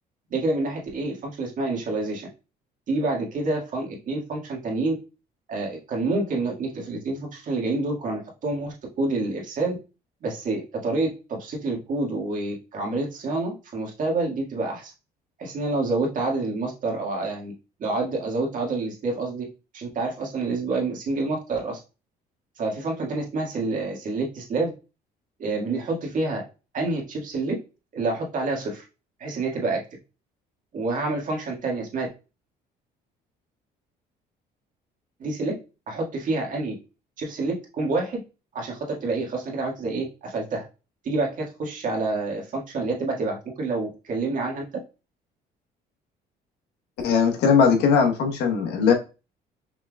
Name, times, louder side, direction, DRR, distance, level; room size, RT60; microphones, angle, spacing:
voice 1, 0.3-2.3 2.9-5.0 5.5-9.8 10.2-14.9 15.4-17.5 17.8-19.4 19.7-21.8 22.6-24.7 25.4-26.4 26.7-27.6 27.9-28.8 29.2-29.8 30.7-32.1 35.2-35.5 35.9-36.7 37.2-38.2 38.5-40.6 41.0-44.6, right 3 dB, 50° right, 0 dB, 1.8 m, -28 dB
voice 2, 47.0-48.9, left 6 dB, 80° left, 4 dB, 1.1 m, -19 dB
5.7 x 3.4 x 2.3 m, 0.30 s
cardioid pair, 110°, 17 cm